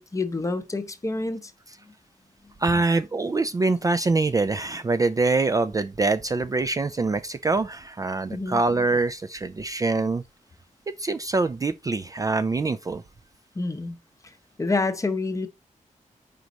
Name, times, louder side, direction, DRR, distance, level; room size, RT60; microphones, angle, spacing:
voice 1, 0.0-1.5 8.3-8.6 13.6-14.0 14.6-15.5, left 3 dB, 25° left, 0.7 m, -27 dB
voice 2, 2.6-10.2 11.0-13.0, right 3 dB, 25° right, 0.3 m, -24 dB
5.1 x 4.6 x 4.0 m
wide cardioid pair, 145°, 14 cm